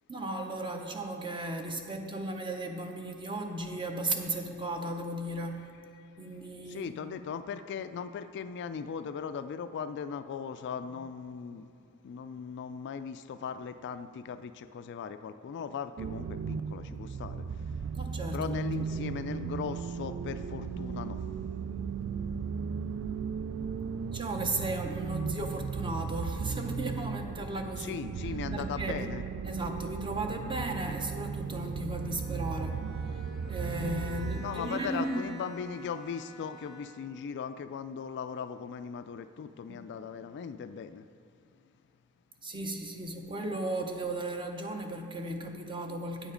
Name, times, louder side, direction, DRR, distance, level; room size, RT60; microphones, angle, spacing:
voice 1, 0.1-5.7 6.2-7.0 10.8-11.0 18.0-19.1 24.1-28.0 28.5-29.1 29.4-33.2 33.5-35.2 39.7-39.9 42.4-46.3, right 2 dB, 20° right, 3 dB, 0.8 m, -36 dB
voice 2, 6.7-11.7 12.0-17.5 18.3-21.2 27.8-29.2 34.4-41.1, left 6 dB, 50° left, 11 dB, 0.3 m, -38 dB
sound 1, 16.0-34.4, right 6 dB, 60° right, 0.3 m, -36 dB
Bowed string instrument, 32.0-37.2, equal, ahead, 1.2 m, -49 dB
8.9 x 7.1 x 5.0 m, 2.4 s
head